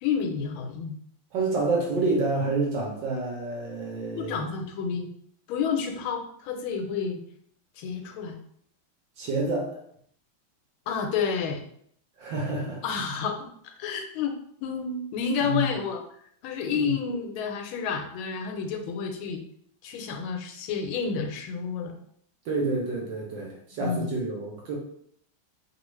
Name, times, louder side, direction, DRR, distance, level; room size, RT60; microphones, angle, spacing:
voice 1, 0.0-0.9 4.2-5.1 5.5-7.2 7.8-8.4 10.9-11.6 12.8-16.0 16.4-19.4 19.8-21.9 23.8-24.1, left 6 dB, 85° left, 4 dB, 1.4 m, -30 dB
voice 2, 1.3-4.4 9.2-9.8 12.2-12.8 15.4-15.7 16.7-16.9 22.4-24.8, right 3 dB, 70° right, -2 dB, 1.4 m, -28 dB
3.3 x 2.3 x 3.0 m, 0.66 s
omnidirectional pair, 2.2 m